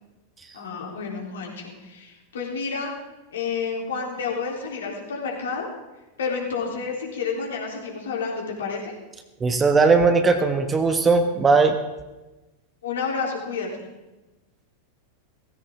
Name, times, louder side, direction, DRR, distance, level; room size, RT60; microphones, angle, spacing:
voice 1, 0.5-2.9 3.3-5.7 6.2-8.9 12.8-13.8, left 5 dB, 65° left, -1 dB, 3.7 m, -30 dB
voice 2, 9.4-11.8, right 4 dB, 15° right, 7 dB, 1.3 m, -18 dB
17.5 x 16.0 x 3.8 m, 1.1 s
figure-of-eight pair, 90°, 0 cm